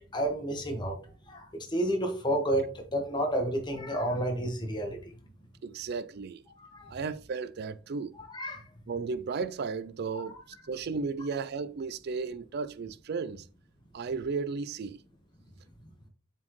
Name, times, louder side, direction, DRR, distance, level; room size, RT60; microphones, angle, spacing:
voice 1, 0.1-1.0 1.3-5.0 6.6-6.9 8.3-8.6 10.1-10.3, right 1 dB, 20° left, 1.2 m, -30 dB
voice 2, 5.6-6.4 6.9-8.1 8.9-10.4 10.7-13.5 13.9-15.0, right 4 dB, 50° right, 0.4 m, -34 dB
7.3 x 4.2 x 3.1 m
head